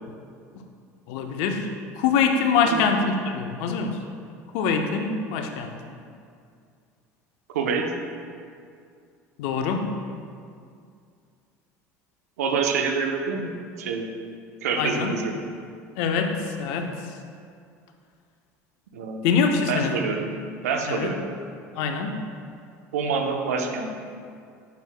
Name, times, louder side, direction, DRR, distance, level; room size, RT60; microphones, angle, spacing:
voice 1, 1.1-1.7 2.0-4.0 4.5-5.7 9.4-9.9 14.8-15.1 16.0-17.0 19.2-19.9 20.9-21.1 21.8-22.2, left 5 dB, 70° left, 5 dB, 0.6 m, -24 dB
voice 2, 7.5-7.9 12.4-14.0 14.6-15.3 18.9-19.3 19.7-20.3 20.6-21.3 22.9-23.9, right 5 dB, 85° right, 4 dB, 0.7 m, -26 dB
9.3 x 6.2 x 2.2 m, 2.3 s
hypercardioid pair, 75°, 8 cm